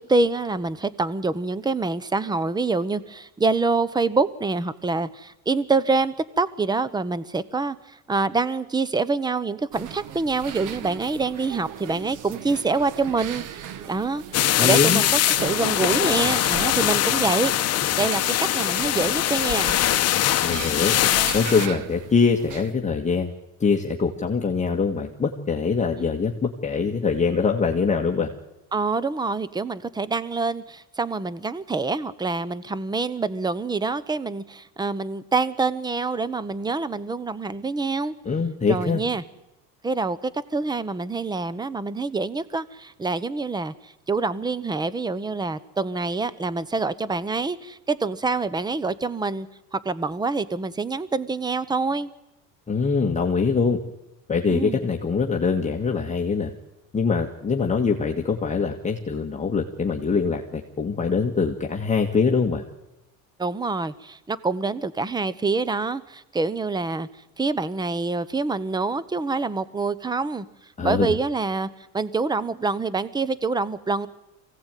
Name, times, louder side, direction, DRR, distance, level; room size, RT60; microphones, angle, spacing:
voice 1, 0.0-7.8 8.1-13.4 13.9-14.2 14.6-17.5 17.9-19.7 26.0-26.1 28.7-38.1 38.7-39.2 39.8-49.5 49.7-52.1 54.5-54.8 63.4-67.1 67.4-70.5 70.8-71.7 71.9-74.1, right 3 dB, 10° right, 17 dB, 0.9 m, -26 dB
sound 1, 9.7-22.7, right 9 dB, 55° right, 1.5 m, -38 dB
sound 2, 14.3-21.7, left 13 dB, 40° left, 1.0 m, -22 dB
voice 2, 14.6-15.0 20.4-21.0 21.3-23.3 23.6-28.3 38.3-39.0 52.7-53.8 54.3-56.5 56.9-62.6 70.8-71.2, left 5 dB, 20° left, 1 dB, 1.7 m, -23 dB
24.0 x 17.0 x 9.2 m, 0.94 s
cardioid pair, 120°, 37 cm